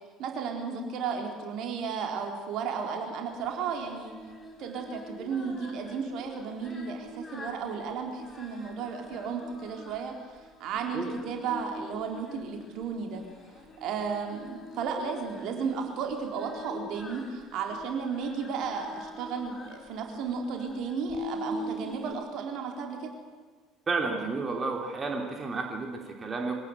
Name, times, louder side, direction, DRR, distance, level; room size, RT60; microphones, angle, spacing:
voice 1, 0.2-4.1 4.6-10.1 10.6-13.2 13.8-23.1, right 6 dB, 55° right, 3 dB, 4.0 m, -34 dB
Singing, 3.4-22.1, left 1 dB, 25° left, 5.8 m, -44 dB
voice 2, 23.9-26.6, right 4 dB, 30° right, 2 dB, 3.3 m, -31 dB
23.5 x 18.0 x 8.2 m, 1.5 s
figure-of-eight pair, 60°, 0 cm